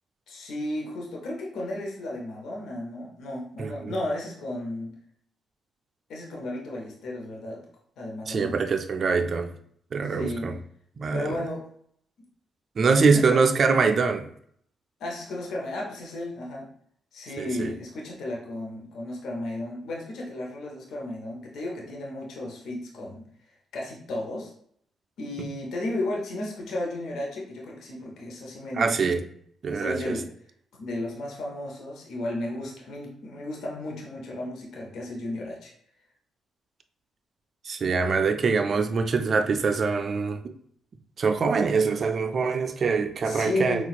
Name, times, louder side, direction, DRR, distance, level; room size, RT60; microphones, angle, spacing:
voice 1, 0.3-4.9 6.1-7.6 8.0-8.6 10.0-10.5 11.1-11.6 12.8-13.4 15.0-16.7 17.1-23.2 23.7-24.5 25.2-29.0 29.7-30.3 30.8-35.7 43.2-43.8, left 1 dB, 70° left, 0.7 m, -34 dB
voice 2, 3.6-3.9 8.3-9.5 9.9-10.5 11.0-11.4 12.8-14.3 17.4-17.7 25.4-25.5 28.8-29.2 29.6-30.2 37.6-40.5 41.2-43.8, right 4 dB, 50° right, 0.3 m, -24 dB
4.0 x 2.2 x 2.3 m
hypercardioid pair, 45°, 0 cm